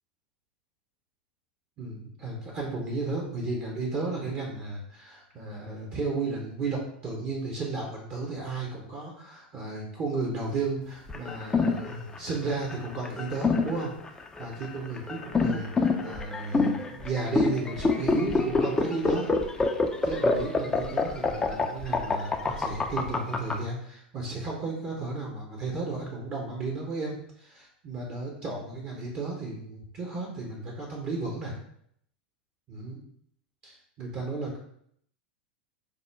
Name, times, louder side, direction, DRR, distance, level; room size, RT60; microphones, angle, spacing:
voice 1, 1.8-13.9 14.4-19.6 20.0-31.5 32.7-33.0 33.6-34.6, right 3 dB, 40° right, -1 dB, 0.9 m, -34 dB
sound 1, 11.1-23.5, left 3 dB, 15° left, 0.4 m, -26 dB
5.2 x 2.1 x 3.3 m, 0.68 s
figure-of-eight pair, 90°, 5 cm